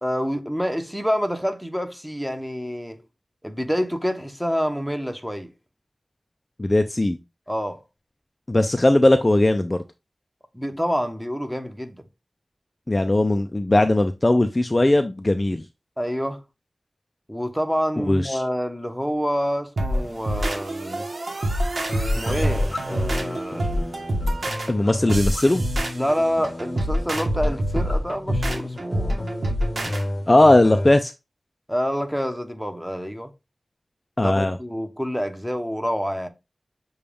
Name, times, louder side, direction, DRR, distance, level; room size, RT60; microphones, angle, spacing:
voice 1, 0.0-3.0 3.4-5.5 7.5-7.8 10.5-12.1 16.0-16.4 17.3-21.1 22.2-23.7 25.9-29.3 31.7-33.3 34.2-36.3, equal, ahead, 0.8 m, -27 dB
voice 2, 6.6-7.2 8.5-9.8 12.9-15.6 18.0-18.4 24.7-25.6 30.3-31.1 34.2-34.6, left 1 dB, 30° left, 0.4 m, -18 dB
sound 1, 19.8-30.0, equal, 80° right, 1.0 m, -26 dB
sound 2, 21.9-30.9, left 1 dB, 45° left, 0.7 m, -33 dB
6.7 x 2.3 x 3.4 m
wide cardioid pair, 70°, 0 cm